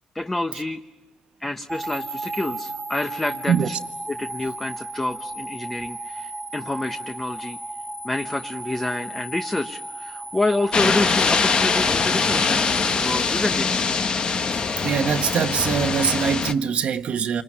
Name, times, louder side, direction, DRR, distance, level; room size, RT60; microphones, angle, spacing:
voice 1, 0.1-0.8 1.4-3.8 4.1-7.6 8.0-13.7, left 2 dB, 15° left, 0.9 m, -28 dB
sound 1, 1.7-13.9, right 2 dB, 15° right, 1.7 m, -35 dB
sound 2, 10.7-16.5, left 5 dB, 45° left, 1.1 m, -22 dB
voice 2, 14.8-17.4, right 7 dB, 65° right, 1.2 m, -23 dB
28.0 x 20.5 x 9.9 m
cardioid pair, 95°, 2 cm